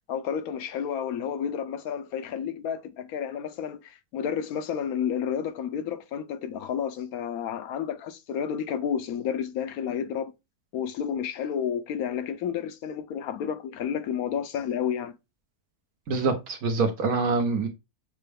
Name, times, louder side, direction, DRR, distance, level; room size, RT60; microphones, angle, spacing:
voice 1, 0.1-10.3 10.7-15.2, left 8 dB, 75° left, 1.1 m, -31 dB
voice 2, 16.1-17.7, right 4 dB, 75° right, 1.5 m, -25 dB
6.5 x 2.2 x 3.4 m
omnidirectional pair, 1.6 m